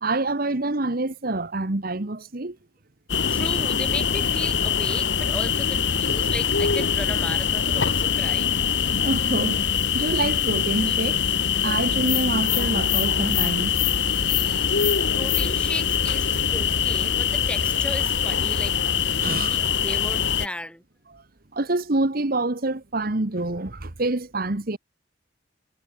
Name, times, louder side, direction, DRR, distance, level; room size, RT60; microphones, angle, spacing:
voice 1, 0.0-2.6 9.0-11.3 11.6-13.8 14.3-14.6 19.2-19.7 21.1-21.2 21.5-24.8, right 2 dB, 50° right, 1.4 m, -27 dB
sound 1, 3.1-20.5, left 7 dB, 70° left, 1.4 m, -23 dB
voice 2, 3.3-8.5 15.1-18.8 19.1-20.8, left 1 dB, 5° left, 2.0 m, -35 dB
head